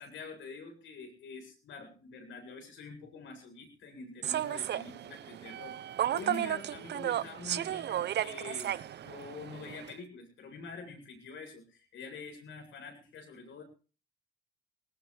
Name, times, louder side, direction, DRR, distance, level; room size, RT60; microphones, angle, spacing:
voice 1, 0.0-13.6, left 4 dB, 75° left, 3 dB, 7.8 m, -46 dB
Human voice / Subway metro underground, 4.2-9.9, right 11 dB, 60° right, 0.7 m, -34 dB
19.5 x 19.5 x 3.4 m, 0.37 s
cardioid pair, 90°, 20 cm